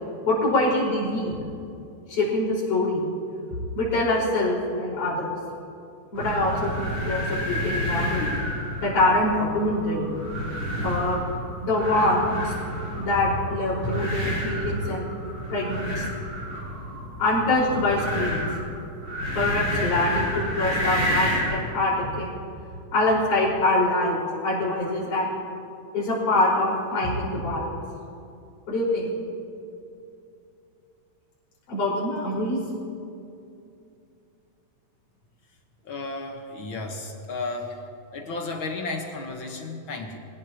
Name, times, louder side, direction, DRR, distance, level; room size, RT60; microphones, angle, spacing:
voice 1, 0.2-1.3 2.1-3.0 3.7-5.3 6.1-8.3 8.8-10.1 10.8-11.2 11.6-12.5 13.0-15.0 15.5-16.1 17.2-18.4 19.3-22.3 22.9-25.4 25.9-27.7 28.7-29.1 31.7-32.6, left 2 dB, 90° left, -6 dB, 6.7 m, -24 dB
sound 1, 6.1-21.6, equal, 40° right, 4.7 m, -30 dB
voice 2, 35.8-37.8 38.1-40.2, left 3 dB, 50° left, 2 dB, 1.8 m, -33 dB
26.5 x 17.5 x 3.0 m, 2.6 s
omnidirectional pair, 3.4 m